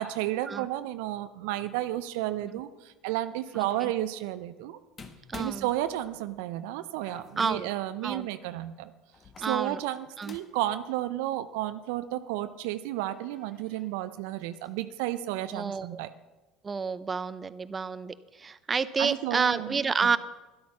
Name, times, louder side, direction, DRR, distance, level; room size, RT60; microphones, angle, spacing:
voice 1, 0.0-4.8 5.4-8.9 9.4-16.1 19.0-20.1, right 14 dB, 70° right, 12 dB, 0.5 m, -32 dB
sound 1, 3.4-3.9 5.0-6.4 7.0-7.9 9.1-10.7 11.0-11.1 12.3-12.4 12.9-14.0 14.3-14.8, left 4 dB, 35° left, 1.3 m, -51 dB
voice 2, 3.5-3.9 5.3-5.7 7.4-7.7 8.0-8.3 9.4-9.8 10.2-10.4 15.5-16.0 16.6-20.2, right 5 dB, 25° right, 14 dB, 0.6 m, -30 dB
12.5 x 11.5 x 5.8 m, 1.1 s
hypercardioid pair, 65°, 0 cm